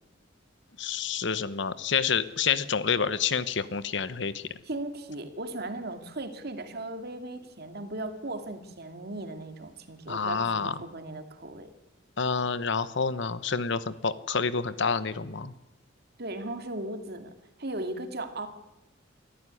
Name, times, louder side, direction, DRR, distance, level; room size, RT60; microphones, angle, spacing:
voice 1, 0.8-4.4 10.1-10.8 12.2-15.5, left 6 dB, 65° left, 15 dB, 1.0 m, -28 dB
voice 2, 4.6-11.7 16.2-17.3 17.6-18.5, right 2 dB, 55° right, 7 dB, 2.4 m, -37 dB
23.5 x 14.0 x 10.0 m, 0.99 s
head